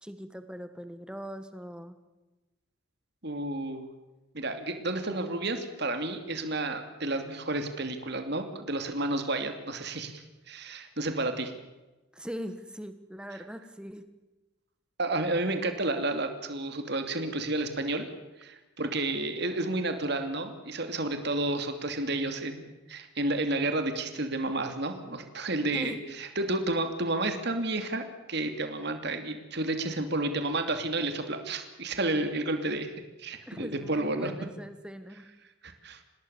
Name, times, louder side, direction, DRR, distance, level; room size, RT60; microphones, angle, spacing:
voice 1, 0.0-2.0 12.1-14.0 25.7-26.0 33.5-35.3, equal, 5° right, 10 dB, 1.7 m, -41 dB
voice 2, 3.2-3.9 4.3-11.5 15.0-18.1 18.4-32.9 33.2-34.3 35.6-36.0, right 2 dB, 55° right, 7 dB, 2.8 m, -31 dB
26.5 x 20.0 x 7.1 m, 1.1 s
head